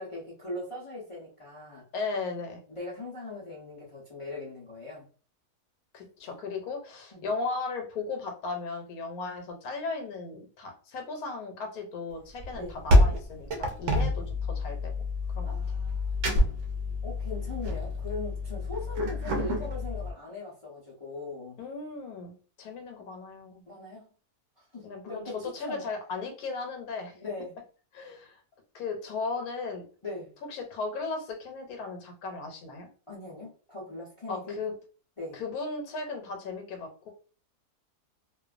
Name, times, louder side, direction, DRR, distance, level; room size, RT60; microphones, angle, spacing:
voice 1, 0.0-1.8 2.7-5.1 7.1-7.3 12.5-12.8 15.4-16.4 17.0-21.6 23.0-23.1 23.7-24.1 24.6-25.8 27.1-27.5 30.0-30.3 33.1-34.6 35.2-35.4, left 2 dB, 50° left, -7 dB, 0.3 m, -40 dB
voice 2, 1.9-2.6 5.9-14.9 15.3-15.6 21.6-23.6 24.8-27.1 27.9-28.4 28.7-29.8 30.4-32.9 34.3-34.7 35.3-37.1, left 4 dB, 75° left, 4 dB, 1.1 m, -36 dB
sound 1, 12.4-20.1, left 1 dB, 65° right, 0.8 m, -27 dB
2.5 x 2.3 x 2.4 m, 0.40 s
omnidirectional pair, 1.7 m